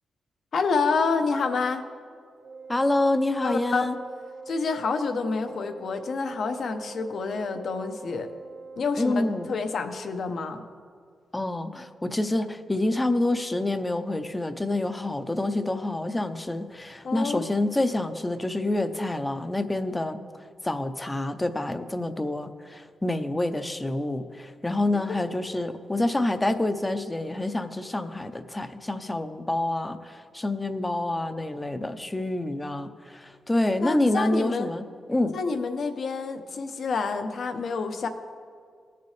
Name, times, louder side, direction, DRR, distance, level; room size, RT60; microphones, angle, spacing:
voice 1, 0.5-1.8 3.4-3.9 4.5-8.3 8.8-10.6 17.0-17.5 33.8-34.7 35.3-38.1, left 4 dB, 65° left, 7 dB, 0.8 m, -28 dB
Wind instrument woodwind instrument, 2.4-9.7, right 4 dB, 85° right, 2.2 m, -43 dB
voice 2, 2.7-4.0 9.0-9.5 11.3-20.2 20.6-35.4, left 2 dB, 15° left, 9 dB, 0.6 m, -27 dB
18.0 x 6.8 x 3.3 m, 2.1 s
cardioid pair, 100°, 0 cm